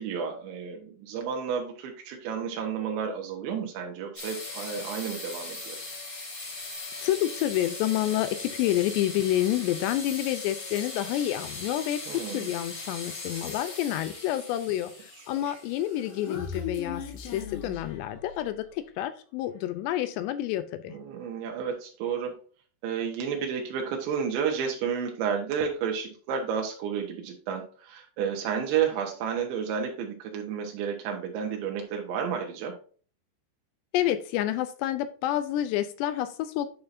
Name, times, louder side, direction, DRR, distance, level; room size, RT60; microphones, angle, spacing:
voice 1, 0.0-5.8 12.1-12.4 15.5-15.6 20.9-22.3 22.8-32.8, right 7 dB, 85° right, 1 dB, 3.5 m, -31 dB
sound 1, 4.2-17.6, left 3 dB, 30° left, 2.3 m, -40 dB
voice 2, 7.0-20.9 33.9-36.7, left 13 dB, 80° left, 11 dB, 2.7 m, -29 dB
Human voice, 15.7-18.7, left 6 dB, 65° left, 2.6 m, -38 dB
10.5 x 5.6 x 2.6 m, 0.41 s
omnidirectional pair, 5.1 m